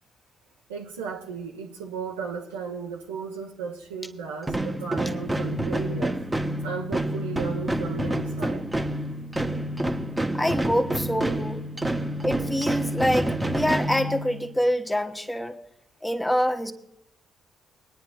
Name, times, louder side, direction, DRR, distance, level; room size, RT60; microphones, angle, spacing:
voice 1, 0.7-6.2 6.6-8.7, right 6 dB, 85° right, 1.0 m, -35 dB
sound 1, 4.4-14.6, right 1 dB, 15° right, 1.1 m, -28 dB
voice 2, 10.3-11.6 12.2-15.6 16.0-16.7, equal, 5° left, 1.2 m, -25 dB
22.5 x 9.6 x 2.4 m
hypercardioid pair, 45°, 0 cm